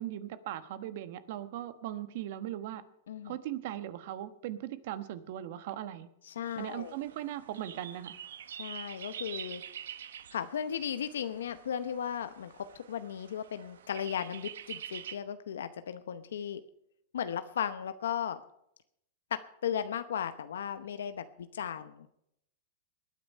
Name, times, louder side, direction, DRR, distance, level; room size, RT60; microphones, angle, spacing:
voice 1, 0.0-2.8 3.2-6.1 6.6-8.1, right 12 dB, 60° right, 12 dB, 1.2 m, -39 dB
voice 2, 3.1-3.4 6.2-7.0 8.6-9.6 10.3-16.6 17.1-18.4 19.3-22.1, left 8 dB, 90° left, 11 dB, 0.7 m, -36 dB
sound 1, 6.5-15.2, right 9 dB, 85° right, 1.0 m, -46 dB
20.0 x 9.4 x 5.5 m, 0.78 s
hypercardioid pair, 145°, 0 cm